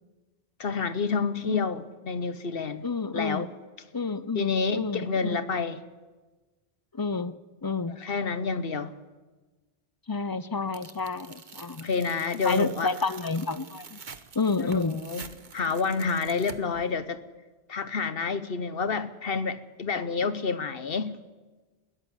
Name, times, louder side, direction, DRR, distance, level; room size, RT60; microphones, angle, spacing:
voice 1, 0.6-2.9 3.1-3.5 4.3-5.8 8.0-8.9 11.8-12.9 14.6-17.2 17.7-21.2, left 5 dB, 60° left, 1.1 m, -29 dB
voice 2, 2.8-3.5 3.9-5.4 6.9-8.0 10.1-11.9 12.4-14.0 14.3-15.0, left 4 dB, 25° left, 0.5 m, -30 dB
Tearing, 10.7-16.9, right 5 dB, 45° right, 1.2 m, -46 dB
21.0 x 14.0 x 9.9 m
omnidirectional pair, 1.1 m